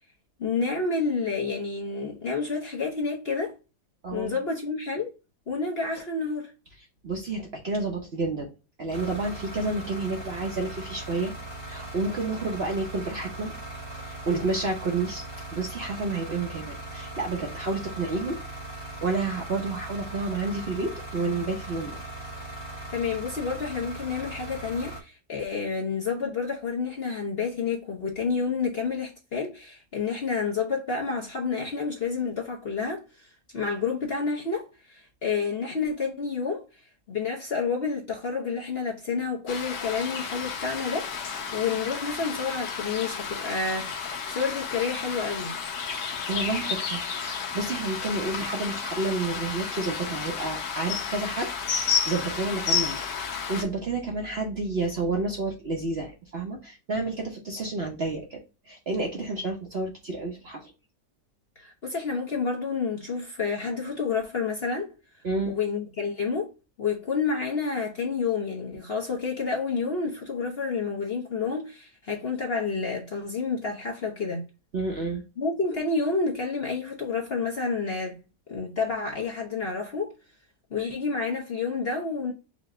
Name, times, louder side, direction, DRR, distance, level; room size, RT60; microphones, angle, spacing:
voice 1, 0.4-3.6 4.1-5.1 5.5-6.5 22.9-33.3 33.5-36.6 37.1-45.5 61.6-64.9 65.5-66.5 66.8-74.4 75.4-78.2 78.5-80.1 80.7-82.3, left 4 dB, 45° left, 0.8 m, -29 dB
voice 2, 4.0-4.4 7.0-8.5 8.8-11.3 11.6-13.5 14.0-15.2 15.5-18.4 18.8-22.0 46.3-47.0 47.3-53.0 53.5-58.4 58.7-60.7 65.2-65.5 74.7-75.2, right 3 dB, 50° right, 0.8 m, -30 dB
sound 1, 8.9-25.0, right 2 dB, 20° left, 1.0 m, -39 dB
sound 2, 39.5-53.6, left 6 dB, 80° left, 1.5 m, -32 dB
5.0 x 2.2 x 3.6 m
omnidirectional pair, 1.8 m